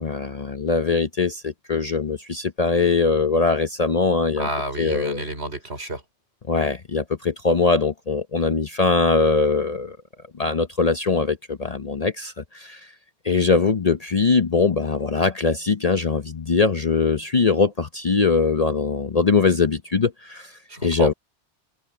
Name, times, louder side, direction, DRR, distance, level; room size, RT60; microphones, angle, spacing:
voice 1, 0.0-4.5 4.8-5.2 6.5-10.0 10.4-12.8 13.2-20.5 20.8-21.1, left 4 dB, 40° left, 0.7 m, -21 dB
voice 2, 4.4-6.0 20.7-21.1, right 1 dB, 65° right, 5.4 m, -29 dB
omnidirectional pair, 1.2 m